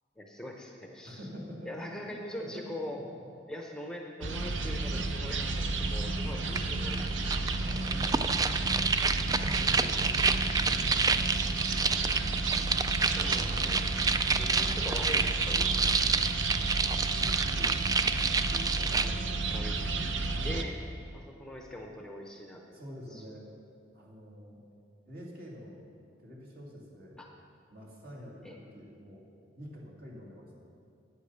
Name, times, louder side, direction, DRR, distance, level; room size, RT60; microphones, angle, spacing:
voice 1, 0.2-1.2 1.7-3.0 3.5-7.5 13.0-16.2 16.6-16.7 19.5-19.8 20.4-20.8 21.1-22.8 23.1-23.2 27.2-27.3 28.4-28.6, left 1 dB, 5° left, 1 dB, 0.7 m, -42 dB
voice 2, 1.0-2.6 2.9-3.0 7.6-8.4 9.1-11.6 14.2-14.5 16.9-17.7 18.5-19.9 20.3-20.7 22.7-23.5 23.9-24.6 25.1-25.9 26.2-27.2 27.7-29.2 29.6-30.7, equal, 55° right, -3 dB, 2.4 m, -46 dB
sound 1, 4.2-20.6, right 3 dB, 80° right, 0.7 m, -32 dB
sound 2, 6.6-6.7 6.9-19.1, right 4 dB, 20° right, 0.3 m, -29 dB
9.2 x 8.3 x 6.9 m, 2.4 s
head